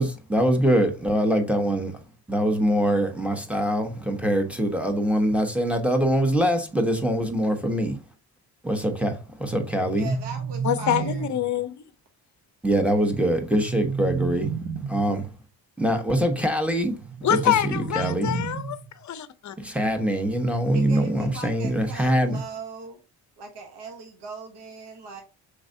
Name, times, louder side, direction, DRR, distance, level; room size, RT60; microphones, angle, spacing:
voice 1, 0.0-1.9 2.3-8.0 8.6-10.1 12.6-14.5 14.9-15.2 15.8-17.0 17.3-17.4 17.7-18.4 19.6-22.4, equal, 5° right, 1.2 m, -23 dB
sound 1, 9.6-11.6 13.3-15.2 17.0-19.0, right 6 dB, 30° right, 1.2 m, -32 dB
voice 2, 10.0-11.3 20.7-23.0 23.4-25.2, right 4 dB, 60° right, 1.2 m, -39 dB
voice 3, 10.6-11.9 17.2-19.5, left 10 dB, 40° left, 0.7 m, -26 dB
6.3 x 3.1 x 2.7 m
supercardioid pair, 50°, 47 cm